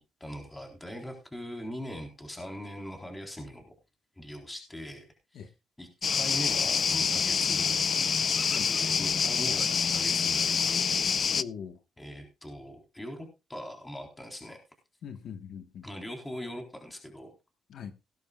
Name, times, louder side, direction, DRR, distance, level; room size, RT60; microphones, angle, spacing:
voice 1, 0.2-3.7 4.2-5.1 5.3-5.4 5.8-7.9 8.7-11.0 12.0-14.6 15.8-17.3, equal, 10° left, 3.7 m, -41 dB
sound 1, 6.0-11.4, left 6 dB, 45° left, 0.5 m, -26 dB
voice 2, 11.3-11.8 15.0-15.9 17.7-17.9, left 7 dB, 70° left, 1.2 m, -41 dB
18.5 x 10.5 x 2.3 m
cardioid pair, 90°, 0 cm